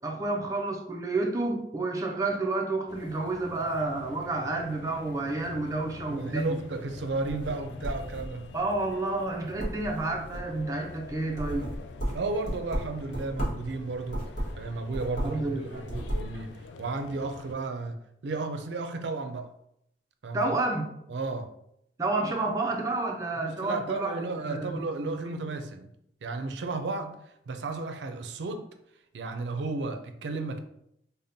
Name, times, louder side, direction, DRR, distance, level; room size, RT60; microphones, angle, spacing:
voice 1, 0.0-6.6 8.5-11.7 15.2-15.9 20.3-20.9 22.0-24.2 24.5-25.1, right 2 dB, 20° right, 0.4 m, -30 dB
sound 1, 2.9-17.5, left 4 dB, 85° left, 0.3 m, -46 dB
voice 2, 6.1-8.5 12.1-14.3 14.6-19.5 20.2-20.6 21.1-21.5 23.4-25.9 26.2-28.7 29.1-30.6, right 3 dB, 85° right, 0.4 m, -33 dB
sound 2, 7.1-8.6 9.0-9.3 9.6-10.6 11.1-13.7 14.1-15.5 15.7-16.3, equal, 45° left, 1.0 m, -34 dB
5.0 x 2.1 x 2.6 m
head